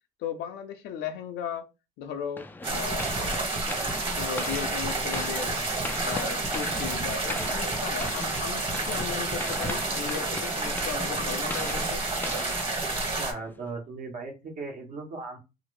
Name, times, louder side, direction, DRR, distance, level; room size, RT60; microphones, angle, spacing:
voice 1, 0.2-1.7 2.0-2.4 2.7-3.1 4.2-5.6 6.0-12.0, left 8 dB, 85° left, 0.6 m, -36 dB
sound 1, 2.4-13.6, left 2 dB, 10° left, 0.3 m, -40 dB
sound 2, 2.6-13.3, right 2 dB, 30° right, 1.5 m, -30 dB
voice 2, 13.1-15.4, right 3 dB, 55° right, 1.2 m, -37 dB
2.8 x 2.5 x 3.2 m
cardioid pair, 110°, 17 cm